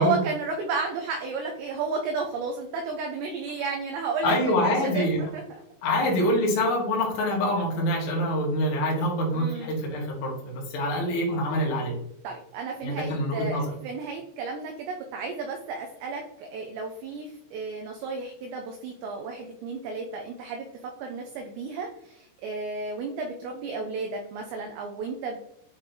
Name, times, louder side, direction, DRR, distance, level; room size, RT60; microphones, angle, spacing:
voice 1, 0.0-5.1 5.3-5.4 5.9-6.1 9.3-9.8 12.2-25.4, right 4 dB, 80° right, 2 dB, 2.5 m, -33 dB
voice 2, 4.2-5.2 5.8-11.9 12.8-13.6, equal, 55° left, -2 dB, 2.1 m, -25 dB
8.6 x 3.2 x 3.9 m, 0.79 s
omnidirectional pair, 5.7 m